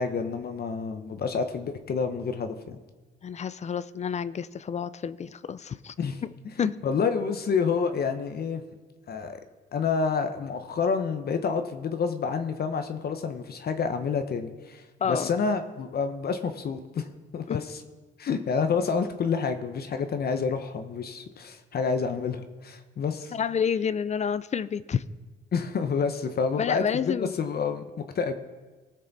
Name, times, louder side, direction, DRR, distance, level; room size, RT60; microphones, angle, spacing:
voice 1, 0.0-2.8 6.0-6.2 6.6-8.6 9.1-9.4 9.7-17.1 17.3-17.8 18.2-23.3 25.5-27.8 28.1-28.3, left 5 dB, 50° left, 7 dB, 0.9 m, -28 dB
voice 2, 3.2-5.9 6.6-6.7 15.0-15.3 17.5-17.6 23.3-25.0 26.6-27.3, left 7 dB, 35° left, 16 dB, 0.5 m, -29 dB
18.5 x 6.6 x 4.0 m, 1.3 s
cardioid pair, 90°, 20 cm